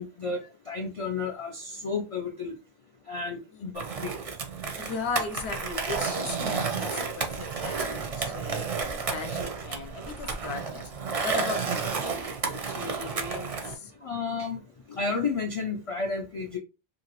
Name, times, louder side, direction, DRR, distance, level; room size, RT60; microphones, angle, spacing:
voice 1, 0.0-2.6 3.1-4.1 14.0-14.6 14.9-16.6, left 4 dB, 50° left, 0.4 m, -32 dB
Skateboard, 3.8-13.7, right 5 dB, 45° right, 0.5 m, -31 dB
voice 2, 4.8-8.6 9.0-10.9 11.2-13.9, left 4 dB, 80° left, 0.9 m, -37 dB
2.8 x 2.6 x 2.9 m
omnidirectional pair, 1.1 m